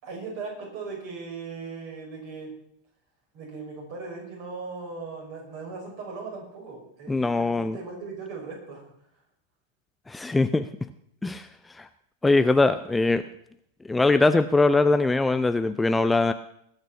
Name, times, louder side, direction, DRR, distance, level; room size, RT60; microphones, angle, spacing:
voice 1, 0.0-2.6 3.3-8.9, right 4 dB, 45° right, -1 dB, 5.9 m, -38 dB
voice 2, 7.1-7.8 10.1-10.7 11.2-11.5 11.7-11.9 12.2-13.2 13.9-16.3, left 3 dB, 10° left, 11 dB, 0.5 m, -21 dB
20.0 x 6.7 x 6.0 m, 0.72 s
figure-of-eight pair, 90°, 0 cm